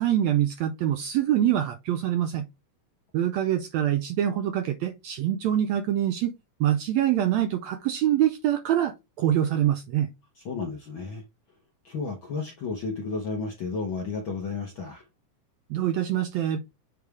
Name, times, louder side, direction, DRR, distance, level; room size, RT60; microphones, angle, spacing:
voice 1, 0.0-2.5 3.1-6.3 6.6-10.1 15.7-16.6, right 11 dB, 80° right, 1.6 m, -25 dB
voice 2, 10.4-11.2 11.8-15.1, left 4 dB, 65° left, 1.2 m, -32 dB
8.0 x 3.3 x 3.5 m
omnidirectional pair, 3.7 m